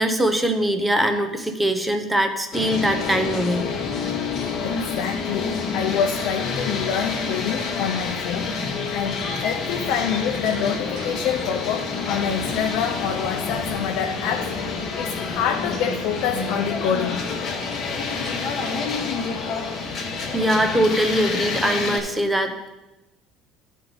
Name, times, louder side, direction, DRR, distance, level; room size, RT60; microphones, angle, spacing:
voice 1, 0.0-3.7 20.3-22.7, right 1 dB, 5° right, 6 dB, 0.6 m, -22 dB
sound 1, 2.5-22.0, left 4 dB, 30° left, 1.0 m, -28 dB
voice 2, 4.6-8.6 8.9-17.3, left 7 dB, 55° left, 3 dB, 0.5 m, -26 dB
Slam, 10.4-11.2 11.5-12.0 17.6-18.9, right 3 dB, 55° right, 1.2 m, -45 dB
13.0 x 4.5 x 4.0 m, 1.0 s
cardioid pair, 180°, 0 cm